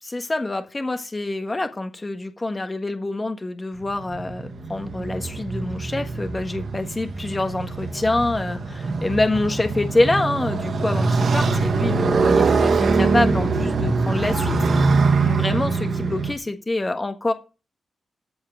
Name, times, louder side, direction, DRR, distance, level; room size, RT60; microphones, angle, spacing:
voice 1, 0.0-14.5 14.9-15.0 15.2-17.3, left 2 dB, 20° left, 7 dB, 1.5 m, -26 dB
Motorcycle, 3.8-16.3, right 4 dB, 55° right, 1.9 m, -23 dB
14.5 x 4.8 x 7.7 m, 0.32 s
wide cardioid pair, 140°, 0 cm